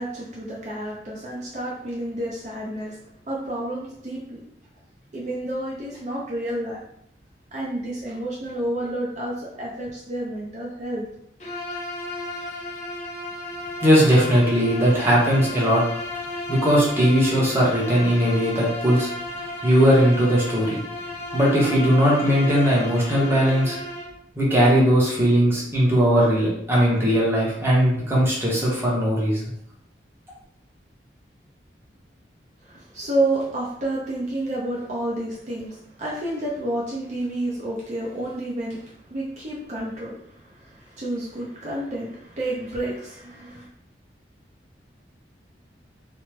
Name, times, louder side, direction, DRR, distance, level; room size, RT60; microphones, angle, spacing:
voice 1, 0.0-3.0 3.3-4.4 5.1-6.8 7.5-11.0 32.6-43.7, right 1 dB, 40° right, -5 dB, 0.6 m, -30 dB
Bowed string instrument, 11.4-24.2, left 2 dB, 40° left, 0.5 m, -33 dB
voice 2, 13.8-15.8 16.5-19.1 19.6-20.8 21.3-23.8 24.4-29.4, equal, 15° right, -5 dB, 0.8 m, -19 dB
3.1 x 2.0 x 3.1 m, 0.71 s
head